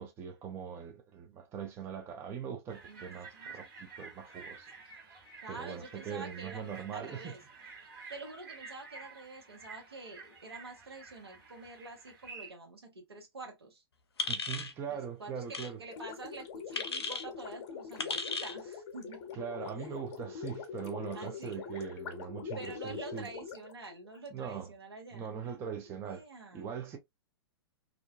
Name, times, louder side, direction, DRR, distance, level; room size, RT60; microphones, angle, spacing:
voice 1, 0.0-7.4 14.3-15.8 19.3-23.3 24.3-24.7 25.1-26.2 26.5-27.0, right 7 dB, 20° right, 0.4 m, -41 dB
sound 1, 2.7-12.5, right 4 dB, 45° right, 1.5 m, -50 dB
voice 2, 5.4-6.6 6.9-7.4 8.1-13.8 14.9-19.3 21.1-21.7 22.6-25.6 26.0-26.7, right 3 dB, 75° right, 1.1 m, -47 dB
sound 2, 14.2-14.7 15.5-15.7 16.7-17.2 18.0-18.6, left 4 dB, 75° left, 0.5 m, -35 dB
Gurgling, 15.9-24.3, left 6 dB, 40° left, 0.7 m, -43 dB
2.5 x 2.2 x 2.3 m
figure-of-eight pair, 105°, 13 cm